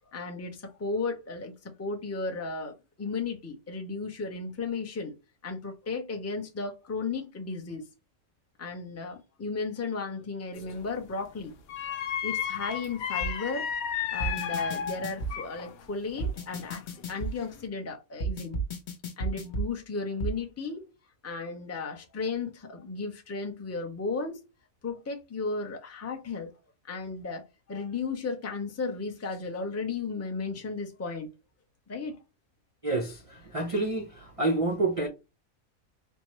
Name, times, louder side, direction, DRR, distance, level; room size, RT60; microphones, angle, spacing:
voice 1, 0.1-5.1 5.4-7.8 8.6-11.5 11.9-12.0 12.2-13.7 14.1-16.8 17.1-18.6 19.2-20.8 21.2-24.4 24.8-26.5 26.9-27.4 27.7-31.3 31.9-32.2, left 4 dB, 20° left, 0.4 m, -34 dB
sound 1, 10.5-10.9 11.7-15.7 16.1-17.0 17.4-17.7, left 8 dB, 80° left, 1.1 m, -33 dB
sound 2, 13.2-13.3 14.2-15.3 16.2-17.3 18.2-19.7 20.2-20.3, right 3 dB, 55° left, 1.0 m, -32 dB
voice 2, 32.8-33.2 33.5-34.1 34.4-35.1, right 2 dB, 45° right, 0.4 m, -27 dB
4.4 x 2.2 x 3.0 m
omnidirectional pair, 1.5 m